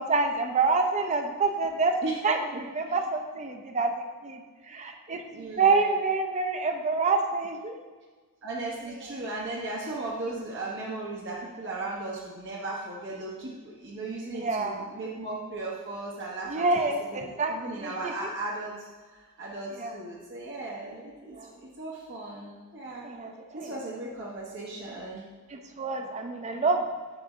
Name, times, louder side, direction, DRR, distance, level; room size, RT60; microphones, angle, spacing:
voice 1, 0.0-1.9 2.2-7.8 14.3-14.9 16.5-18.1 19.8-19.9 21.3-21.5 23.0-23.7 25.5-26.8, right 4 dB, 30° right, 5 dB, 0.5 m, -27 dB
voice 2, 5.3-5.9 8.4-23.0 23.5-25.2, right 2 dB, 55° right, -4 dB, 1.0 m, -37 dB
7.9 x 2.7 x 5.9 m, 1.4 s
head